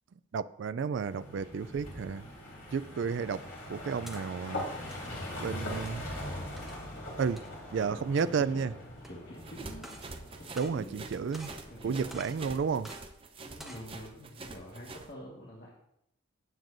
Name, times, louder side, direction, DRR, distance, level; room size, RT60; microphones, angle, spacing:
voice 1, 0.3-2.3 2.7-3.4 3.7-4.7 5.4-6.0 7.2-7.4 7.7-8.7 10.6-11.5 11.8-12.9, right 6 dB, 60° right, 0.3 m, -32 dB
sound 1, 1.0-12.8, left 1 dB, 75° left, 3.9 m, -42 dB
sound 2, 4.0-4.2 4.8-5.1 5.7-6.0 6.6-6.8 7.4-7.5 8.1-8.5 9.0-9.1 9.7-10.1 10.4-11.1 11.3-11.7 12.1-12.4 12.8-13.0 13.5-13.9, right 1 dB, ahead, 1.2 m, -48 dB
voice 2, 7.4-8.7 9.1-9.9 10.3-11.2 11.7-12.2 13.4-15.7, equal, 45° left, 1.7 m, -47 dB
sound 3, 9.4-15.1, right 3 dB, 25° right, 0.6 m, -46 dB
16.0 x 7.7 x 2.6 m
head